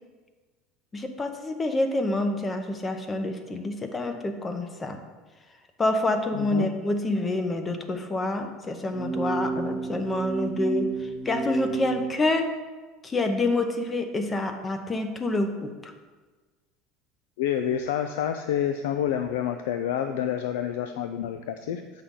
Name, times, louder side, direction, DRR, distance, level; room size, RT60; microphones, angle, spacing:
voice 1, 0.9-5.0 5.8-12.4 13.0-15.9, left 2 dB, 20° left, 6 dB, 0.8 m, -27 dB
voice 2, 6.4-6.7 17.4-21.8, left 9 dB, 90° left, 8 dB, 0.4 m, -28 dB
sound 1, 8.9-12.1, right 4 dB, 25° right, 0.9 m, -30 dB
8.6 x 5.7 x 3.7 m, 1.3 s
supercardioid pair, 125°, 0 cm